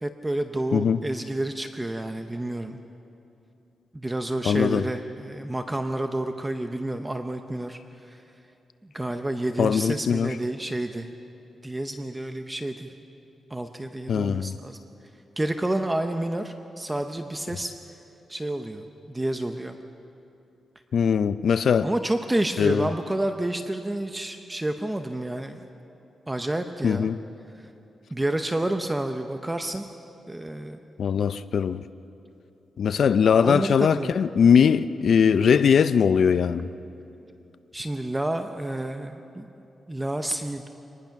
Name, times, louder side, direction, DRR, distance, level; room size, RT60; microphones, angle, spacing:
voice 1, 0.0-2.8 3.9-8.2 8.8-11.1 11.6-12.9 13.5-14.8 15.4-17.7 18.3-19.7 21.8-25.6 26.3-27.1 28.1-29.8 30.3-30.8 33.4-34.1 37.7-39.5 39.9-40.7, right 1 dB, 10° right, 6 dB, 0.7 m, -29 dB
voice 2, 4.4-4.8 9.6-10.4 14.1-14.5 20.9-21.9 22.6-22.9 26.8-27.2 31.0-31.8 32.8-36.7, left 7 dB, 60° left, 13 dB, 0.4 m, -21 dB
25.0 x 19.5 x 5.9 m, 2.8 s
wide cardioid pair, 145°, 0 cm